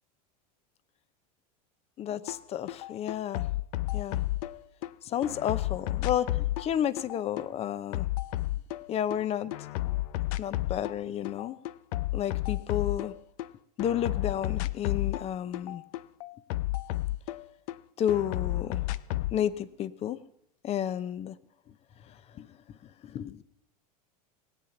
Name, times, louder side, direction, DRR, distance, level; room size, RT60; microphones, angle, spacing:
voice 1, 2.0-3.4 3.9-4.2 5.0-6.3 6.6-8.1 8.9-9.5 10.4-11.6 12.1-13.1 13.8-15.8 18.0-18.8 19.3-20.2 20.6-21.4 22.4-22.5 23.0-23.4, left 10 dB, 35° left, 18 dB, 0.7 m, -31 dB
sound 1, 2.3-2.4 2.7-4.9 5.2-9.2 9.5-11.0 11.3-13.5 13.8-17.8 18.1-19.4, left 16 dB, 65° left, 0.6 m, -32 dB
18.5 x 8.7 x 7.1 m, 0.77 s
supercardioid pair, 115°, 19 cm